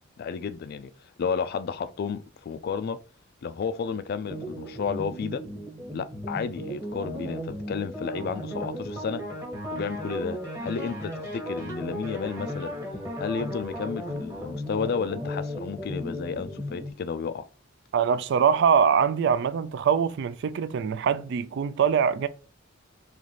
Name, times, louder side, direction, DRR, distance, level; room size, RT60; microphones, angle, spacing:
voice 1, 0.2-0.9 1.2-3.0 3.4-5.4 5.9-9.2 9.7-12.7 13.2-17.5, left 6 dB, 50° left, 0.3 m, -32 dB
sound 1, 4.2-16.9, equal, 15° right, 1.2 m, -35 dB
voice 2, 17.9-22.3, right 7 dB, 60° right, 0.3 m, -23 dB
3.8 x 3.1 x 3.2 m
head